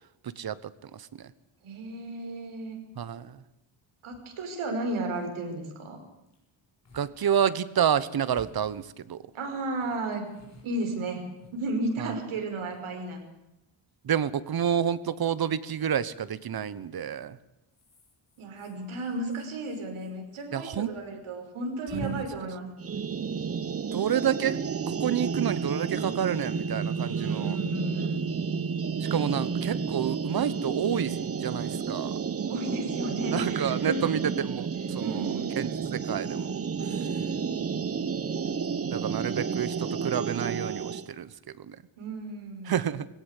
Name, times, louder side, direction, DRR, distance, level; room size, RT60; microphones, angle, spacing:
voice 1, 1.6-2.8 4.0-6.0 9.3-10.3 10.6-11.2 11.5-13.2 18.4-22.7 27.1-28.2 32.5-34.1 35.0-35.6 42.0-42.7, right 2 dB, 80° right, 4 dB, 5.5 m, -34 dB
voice 2, 3.0-3.4 6.9-9.2 12.0-12.1 14.0-17.4 20.5-20.9 21.9-22.2 23.9-24.6 24.9-27.6 29.0-32.2 33.3-36.5 38.9-41.3 41.7-41.8 42.6-43.1, right 8 dB, 50° right, 16 dB, 1.1 m, -29 dB
sound 1, 4.1-4.2 4.7-4.8 5.0-5.4 6.3-6.4 6.9-7.1 7.4-7.5 8.3-9.3 9.8-12.0 12.6-13.3 15.0-15.3 16.6-16.9 17.7-20.5 20.7-20.8 21.1-21.2 21.9-22.1, left 1 dB, 35° left, 6.5 m, -49 dB
sound 2, 22.8-41.1, right 6 dB, 30° right, 0.9 m, -31 dB
20.0 x 17.5 x 8.3 m, 0.89 s
wide cardioid pair, 140°, 48 cm